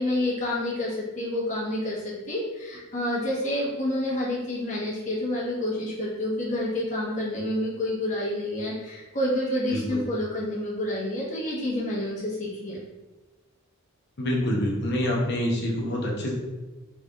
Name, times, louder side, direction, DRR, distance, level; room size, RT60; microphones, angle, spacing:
voice 1, 0.0-12.8, left 1 dB, 35° left, -6 dB, 1.0 m, -28 dB
voice 2, 14.2-16.3, left 1 dB, 50° left, -2 dB, 0.7 m, -26 dB
3.6 x 3.3 x 2.3 m, 1.2 s
head